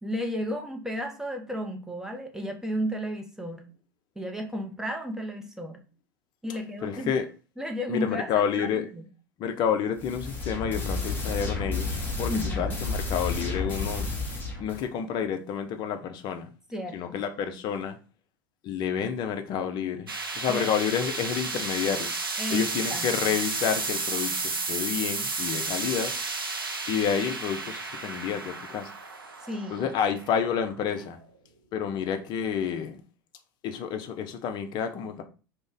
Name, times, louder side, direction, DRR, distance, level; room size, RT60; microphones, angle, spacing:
voice 1, 0.0-3.7 4.2-5.8 6.4-7.2 7.6-9.1 12.3-12.8 16.7-17.2 20.5-20.7 22.4-23.1 29.5-29.9, equal, 5° right, 0.6 m, -33 dB
voice 2, 6.8-7.2 7.9-8.8 9.4-14.1 14.6-16.5 16.9-18.0 18.6-22.1 22.5-26.1 26.9-28.9 29.7-31.2 31.7-33.0 33.6-35.2, left 7 dB, 40° left, 0.5 m, -29 dB
sound 1, 10.0-14.8, left 3 dB, 15° left, 1.0 m, -31 dB
sound 2, 20.1-31.2, right 3 dB, 90° right, 0.4 m, -32 dB
2.5 x 2.1 x 3.8 m
figure-of-eight pair, 85°, 12 cm